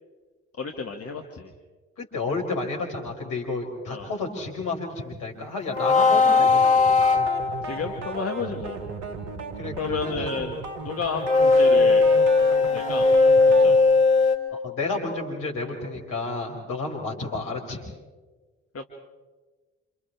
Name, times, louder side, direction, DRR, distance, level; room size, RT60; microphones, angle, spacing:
voice 1, 0.6-1.5 3.9-4.1 7.6-8.8 9.8-10.6 10.8-12.1 12.7-13.1 13.5-13.8 18.7-18.8, left 5 dB, 45° left, 3 dB, 2.0 m, -32 dB
voice 2, 2.0-6.5 9.6-10.3 14.5-17.8, left 3 dB, 65° left, 1 dB, 5.3 m, -31 dB
sound 1, 5.7-7.9 11.2-14.4, left 3 dB, 20° left, 2.7 m, -18 dB
sound 2, 5.8-13.8, right 4 dB, 80° right, 2.1 m, -36 dB
29.5 x 27.5 x 3.6 m, 1.3 s
hypercardioid pair, 45°, 34 cm